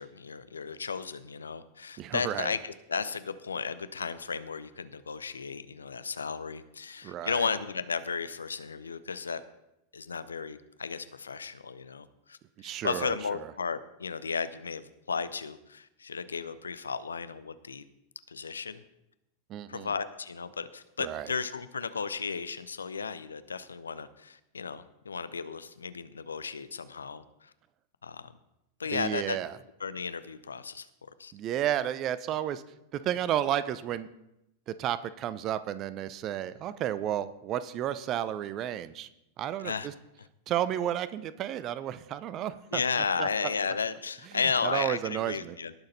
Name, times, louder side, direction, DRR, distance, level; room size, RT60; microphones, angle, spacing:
voice 1, 0.0-9.4 9.9-17.8 18.3-18.8 19.7-27.5 28.0-28.3 28.8-29.4 29.8-30.9 31.2-31.3 39.6-39.9 42.7-45.7, left 5 dB, 75° left, 14 dB, 0.7 m, -34 dB
voice 2, 2.0-2.5 7.0-7.5 12.6-13.2 19.5-19.9 21.0-21.3 28.9-29.5 31.3-32.6 32.9-34.1 34.7-39.1 39.4-39.9 40.5-42.8 43.2-43.5 44.6-45.6, right 11 dB, 35° right, 15 dB, 0.6 m, -32 dB
18.5 x 6.5 x 4.1 m, 0.88 s
figure-of-eight pair, 90°, 0 cm